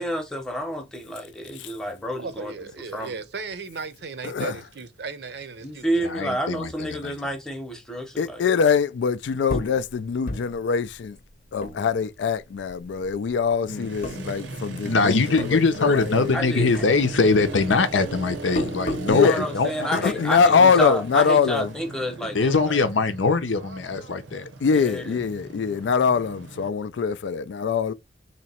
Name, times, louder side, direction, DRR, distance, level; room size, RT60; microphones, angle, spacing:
voice 1, 0.0-2.5 2.9-3.1 5.6-8.5 16.3-16.8 19.1-22.8 24.7-25.2, equal, 5° left, 0.8 m, -29 dB
voice 2, 2.2-6.6, right 4 dB, 60° right, 0.6 m, -36 dB
voice 3, 4.2-4.5 8.2-11.2 11.5-16.3 19.1-19.4 19.9-21.7 24.6-27.9, left 5 dB, 65° left, 0.3 m, -23 dB
voice 4, 6.0-7.1 13.7-14.2 14.8-20.4 22.3-24.5, left 3 dB, 80° left, 0.7 m, -23 dB
sound 1, 9.5-12.4 12.7-13.5 14.0-14.9 15.1-16.5 16.7-19.2, left 1 dB, 45° left, 0.8 m, -33 dB
Motorcycle, 13.7-26.7, right 3 dB, 90° right, 0.9 m, -38 dB
3.0 x 2.9 x 4.2 m
head